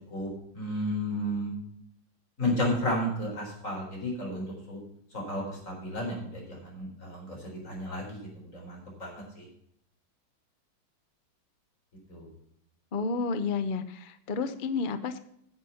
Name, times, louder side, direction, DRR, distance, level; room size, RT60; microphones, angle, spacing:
voice 1, 0.1-1.5 2.4-4.8 5.1-9.4 12.1-12.3, left 1 dB, 40° left, -2 dB, 4.6 m, -33 dB
voice 2, 12.9-15.2, left 4 dB, 75° left, 10 dB, 0.4 m, -31 dB
10.0 x 7.8 x 5.6 m, 0.72 s
omnidirectional pair, 2.2 m